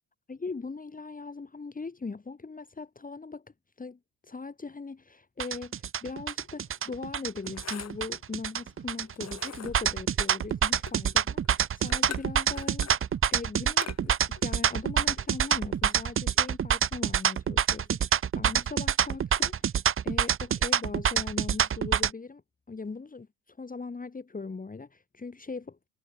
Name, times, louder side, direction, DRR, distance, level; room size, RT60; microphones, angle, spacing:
voice 1, 0.3-3.5 3.8-22.4 22.7-25.8, left 4 dB, 20° left, 2.7 m, -40 dB
sound 1, 5.4-22.1, right 8 dB, 30° right, 1.1 m, -26 dB
sound 2, 6.4-16.2, left 7 dB, 40° left, 5.7 m, -47 dB
figure-of-eight pair, 55°, 41 cm